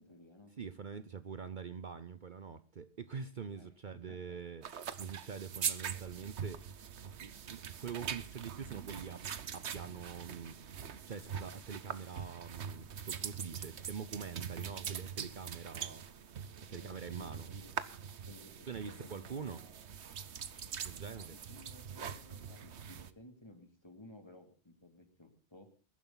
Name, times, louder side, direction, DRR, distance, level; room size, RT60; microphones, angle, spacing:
voice 1, 0.0-0.5 3.5-4.4 16.7-17.7 18.3-19.7 21.1-25.7, left 1 dB, 25° left, 5 dB, 2.7 m, -56 dB
voice 2, 0.6-4.7 5.0-6.6 7.2-9.2 9.5-16.0 16.7-17.5 18.7-19.6 20.8-21.4, right 6 dB, 50° right, 13 dB, 0.9 m, -44 dB
sound 1, 4.6-23.1, right 7 dB, 85° right, 1.3 m, -43 dB
21.0 x 11.5 x 3.9 m, 0.41 s
omnidirectional pair, 1.1 m